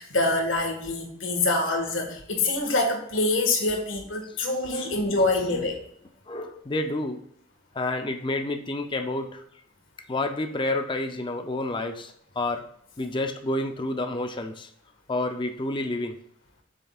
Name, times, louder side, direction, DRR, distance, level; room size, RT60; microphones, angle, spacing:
voice 1, 0.0-5.7, left 2 dB, 80° left, 2 dB, 1.7 m, -25 dB
voice 2, 4.7-5.2 5.5-5.7 6.3-7.2 7.7-9.4 10.1-12.6 13.0-14.7 15.1-16.2, left 2 dB, 25° left, 6 dB, 0.5 m, -29 dB
7.8 x 6.5 x 2.4 m, 0.68 s
head